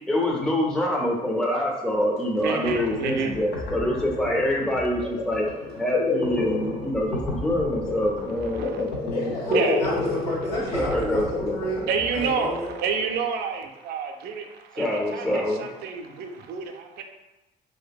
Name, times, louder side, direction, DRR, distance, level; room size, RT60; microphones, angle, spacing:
voice 1, 0.1-9.6 10.7-11.5 14.8-15.6, left 1 dB, 5° left, -1 dB, 0.4 m, -26 dB
sound 1, 2.4-2.5 2.6-13.2, left 2 dB, 85° left, 0.7 m, -31 dB
voice 2, 2.4-3.3 8.4-8.9 9.5-9.9 10.6-11.0 11.9-17.0, right 5 dB, 70° right, 4 dB, 0.4 m, -29 dB
voice 3, 9.1-12.7, equal, 65° left, -5 dB, 1.2 m, -31 dB
2.6 x 2.5 x 2.2 m, 1.1 s
cardioid pair, 110°, 17 cm